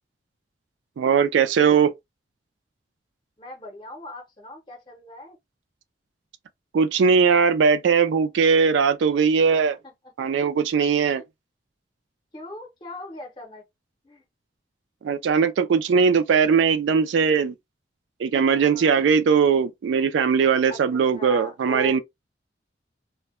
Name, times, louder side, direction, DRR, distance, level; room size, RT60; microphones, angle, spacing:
voice 1, 1.0-1.9 6.7-9.8 10.2-11.2 15.0-17.5 18.2-22.0, right 6 dB, 80° right, 0.3 m, -20 dB
voice 2, 3.4-5.4 11.0-11.2 12.3-13.6 14.0-14.2 18.5-19.1 20.7-20.8 21.1-22.0, left 1 dB, 25° left, 0.6 m, -39 dB
2.1 x 2.1 x 2.9 m
head